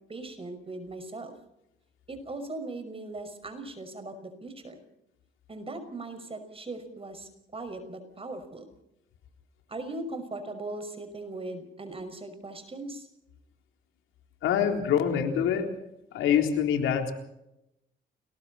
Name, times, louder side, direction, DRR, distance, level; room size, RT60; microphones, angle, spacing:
voice 1, 0.1-1.3 2.1-4.8 5.5-8.7 9.7-13.1, right 2 dB, 30° right, 8 dB, 5.7 m, -39 dB
voice 2, 14.4-15.7 16.1-17.1, left 8 dB, 90° left, 4 dB, 3.8 m, -25 dB
29.5 x 20.5 x 4.3 m, 0.85 s
cardioid pair, 90°, 20 cm